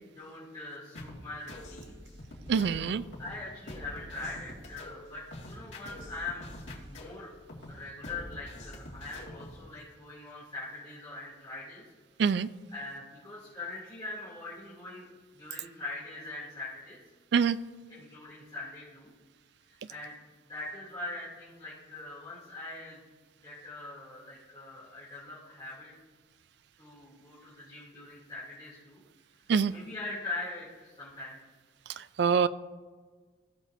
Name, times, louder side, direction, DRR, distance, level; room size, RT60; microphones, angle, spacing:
voice 1, 0.1-2.0 2.7-6.6 6.9-7.3 7.7-11.8 12.7-15.1 15.3-17.0 17.9-19.1 19.9-20.1 20.5-23.0 23.4-25.9 26.8-29.0 29.5-31.4, left 2 dB, 25° left, -11 dB, 2.7 m, -42 dB
sound 1, 0.9-9.6, left 1 dB, 80° left, 2.2 m, -45 dB
voice 2, 2.5-3.0 12.2-12.5 17.3-17.6 29.5-29.7 32.2-32.5, right 6 dB, 60° right, 15 dB, 0.3 m, -24 dB
17.0 x 6.4 x 2.7 m, 1.4 s
head